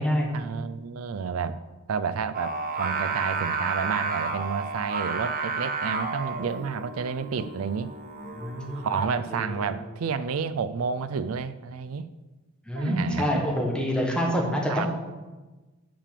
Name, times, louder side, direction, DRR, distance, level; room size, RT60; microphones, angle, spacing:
voice 1, 0.3-1.6 1.9-7.9 8.8-12.1 12.7-13.4 14.7-14.9, right 6 dB, 90° right, 13 dB, 0.4 m, -30 dB
Singing, 2.3-9.0, right 4 dB, 45° right, 0.8 m, -31 dB
voice 2, 8.2-8.9 9.4-9.7 12.7-14.9, equal, 5° left, -1 dB, 1.5 m, -27 dB
6.7 x 6.1 x 6.7 m, 1.2 s
head